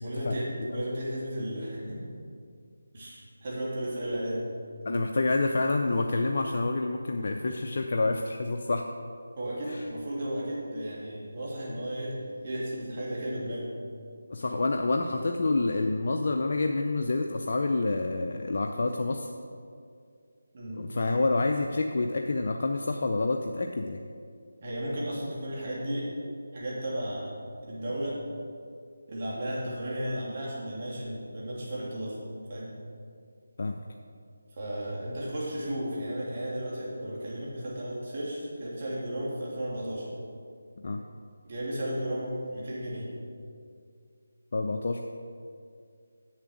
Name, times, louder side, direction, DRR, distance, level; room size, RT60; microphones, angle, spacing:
voice 1, 0.0-2.1 2.9-4.5 9.4-13.7 20.5-20.9 24.6-26.1 26.5-27.3 27.6-28.2 29.1-32.2 32.5-32.7 34.5-40.1 41.4-43.1, right 1 dB, 40° right, -6 dB, 2.8 m, -34 dB
voice 2, 4.8-8.8 9.7-9.8 14.3-19.3 20.8-24.0 33.6-33.8 40.8-41.0 44.5-45.0, left 3 dB, 55° left, 3 dB, 0.5 m, -28 dB
7.9 x 7.3 x 6.2 m, 2.3 s
figure-of-eight pair, 165°, 0 cm